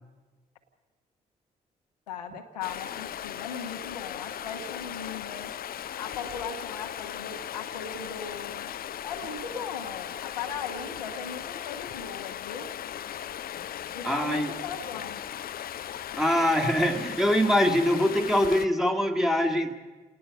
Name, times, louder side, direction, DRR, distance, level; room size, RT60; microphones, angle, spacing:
voice 1, 2.1-5.5 6.0-8.7 9.0-12.7 13.9-15.2, left 6 dB, 80° left, 4 dB, 1.1 m, -38 dB
Stream, 2.6-18.7, left 10 dB, 50° left, 0.7 m, -37 dB
voice 2, 14.0-14.5 16.2-19.7, equal, ahead, 2 dB, 2.0 m, -23 dB
29.5 x 18.5 x 5.2 m, 1.3 s
figure-of-eight pair, 40°, 20 cm